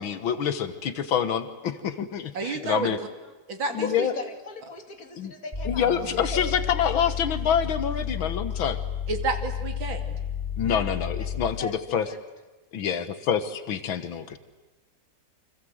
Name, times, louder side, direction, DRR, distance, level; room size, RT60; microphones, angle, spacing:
voice 1, 0.0-3.0 3.7-4.1 5.2-5.3 5.7-8.8 10.6-12.1 12.7-14.4, left 8 dB, 80° left, 11 dB, 2.0 m, -27 dB
voice 2, 2.3-3.0 3.5-4.1 9.1-10.2, right 3 dB, 70° right, 6 dB, 3.2 m, -30 dB
voice 3, 3.8-6.5 10.7-10.9 11.6-12.2, left 4 dB, 45° left, 5 dB, 2.9 m, -37 dB
sound 1, 5.5-11.7, left 8 dB, 20° left, 4.7 m, -32 dB
28.5 x 26.0 x 7.9 m, 1.1 s
omnidirectional pair, 2.2 m